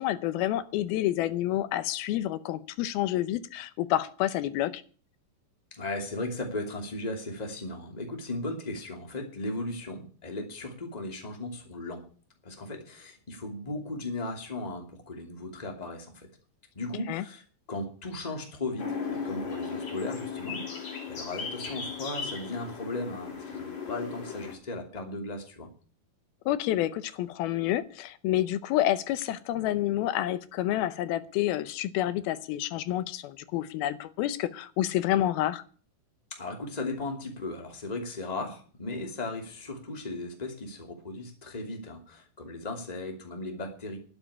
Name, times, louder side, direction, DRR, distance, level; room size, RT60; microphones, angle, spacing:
voice 1, 0.0-4.8 17.1-17.2 26.5-35.6, left 13 dB, 85° left, 14 dB, 2.7 m, -29 dB
voice 2, 5.7-12.0 12.4-16.3 16.7-17.4 17.7-25.7 36.3-44.0, left 2 dB, 15° left, 3 dB, 2.1 m, -36 dB
sound 1, 18.8-24.5, left 5 dB, 50° left, 4.5 m, -36 dB
12.0 x 7.3 x 9.9 m, 0.41 s
omnidirectional pair, 4.3 m